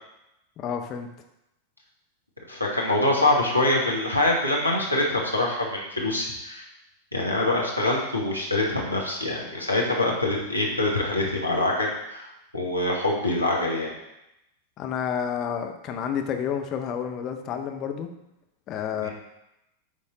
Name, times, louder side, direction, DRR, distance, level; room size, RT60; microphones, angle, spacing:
voice 1, 0.6-1.1 14.8-18.1 18.7-19.1, left 8 dB, 35° left, 5 dB, 0.8 m, -30 dB
voice 2, 2.5-6.6 7.1-12.3 12.5-13.9 19.0-19.1, left 1 dB, 85° left, -2 dB, 1.5 m, -24 dB
9.3 x 3.6 x 3.9 m, 0.88 s
figure-of-eight pair, 90°, 0 cm